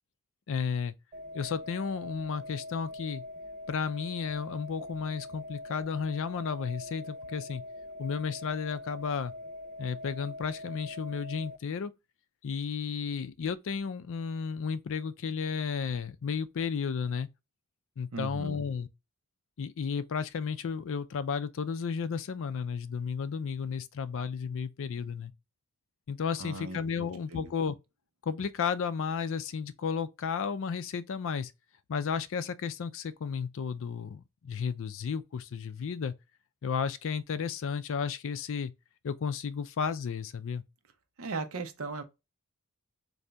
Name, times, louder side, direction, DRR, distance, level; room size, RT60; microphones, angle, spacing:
voice 1, 0.5-0.9 1.3-3.2 3.7-7.6 8.0-9.3 9.8-11.9 12.4-17.3 18.0-18.9 19.6-25.3 26.1-27.8 28.2-31.5 31.9-36.1 36.6-38.7 39.0-40.6, left 6 dB, 60° left, 0.4 m, -33 dB
sound 1, 1.1-11.6, left 2 dB, 35° right, 0.4 m, -43 dB
voice 2, 18.1-18.6 26.4-27.5 41.2-42.0, right 3 dB, 65° right, 0.7 m, -38 dB
3.9 x 2.7 x 3.3 m
head